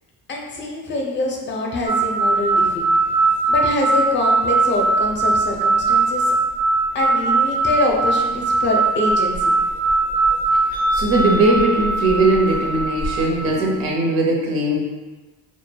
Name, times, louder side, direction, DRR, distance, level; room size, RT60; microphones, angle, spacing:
voice 1, 0.3-2.8 3.5-6.3 6.9-9.5, left 2 dB, 35° left, 0 dB, 0.5 m, -24 dB
sound 1, 1.9-13.8, right 3 dB, 25° right, 0.4 m, -20 dB
voice 2, 10.9-14.8, right 2 dB, 80° right, -1 dB, 0.6 m, -19 dB
2.1 x 2.1 x 3.2 m, 1.3 s
cardioid pair, 120°, 35 cm